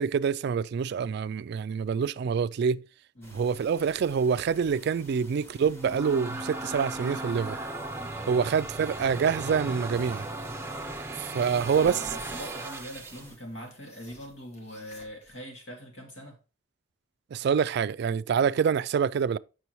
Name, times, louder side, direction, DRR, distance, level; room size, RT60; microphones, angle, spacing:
voice 1, 0.0-2.8 3.3-7.6 8.3-10.2 11.2-12.0 17.3-19.4, right 6 dB, 60° right, 0.3 m, -26 dB
sound 1, 3.2-13.4, equal, 15° left, 1.5 m, -52 dB
sound 2, 5.6-13.3, right 2 dB, 15° right, 0.6 m, -37 dB
sound 3, 9.8-15.4, equal, 35° left, 1.4 m, -55 dB
voice 2, 11.5-16.4, equal, 75° left, 2.0 m, -42 dB
8.2 x 6.2 x 3.0 m
head